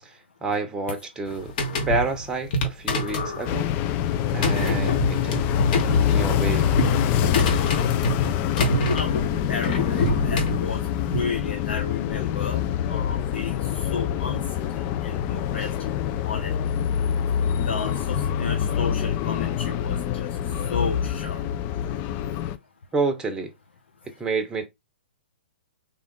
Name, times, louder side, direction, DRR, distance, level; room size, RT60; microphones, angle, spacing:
voice 1, 0.0-1.5 1.9-3.7 4.3-5.4 5.8-6.7 22.9-23.5 24.2-24.7, right 3 dB, 10° right, 0.8 m, -29 dB
sound 1, 1.3-11.2, left 1 dB, 50° left, 1.1 m, -26 dB
sound 2, 3.5-22.6, left 9 dB, 30° left, 0.4 m, -25 dB
voice 2, 9.5-10.8 11.1-14.4 14.7-15.7 16.2-16.5 17.6-20.3 20.7-21.4, left 5 dB, 80° left, 0.7 m, -33 dB
3.6 x 2.4 x 3.6 m
hypercardioid pair, 130°, 6 cm